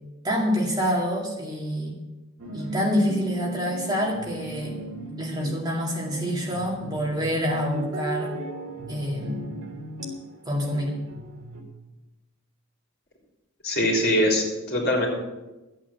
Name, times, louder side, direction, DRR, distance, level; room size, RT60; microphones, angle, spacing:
voice 1, 0.2-1.9 2.5-4.8 5.2-8.3 8.9-9.5 10.5-11.0, equal, 20° right, -2 dB, 2.2 m, -27 dB
sound 1, 2.4-11.6, right 1 dB, 80° right, 2.5 m, -36 dB
voice 2, 13.6-15.1, left 1 dB, 50° left, -2 dB, 3.8 m, -22 dB
13.0 x 8.8 x 7.3 m, 1.1 s
head